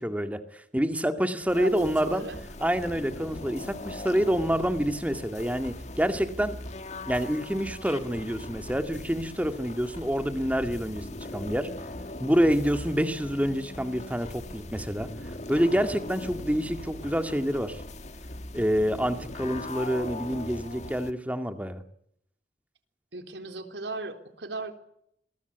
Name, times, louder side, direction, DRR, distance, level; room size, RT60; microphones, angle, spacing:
voice 1, 0.0-2.2 2.6-6.6 7.1-11.7 12.2-15.1 15.5-17.8 18.5-21.8, equal, 10° right, 8 dB, 2.2 m, -27 dB
sound 1, 1.5-21.1, left 1 dB, 40° left, 1.8 m, -40 dB
voice 2, 1.6-2.4 23.1-24.7, right 2 dB, 80° right, 7 dB, 4.0 m, -36 dB
28.0 x 22.5 x 8.3 m, 0.73 s
head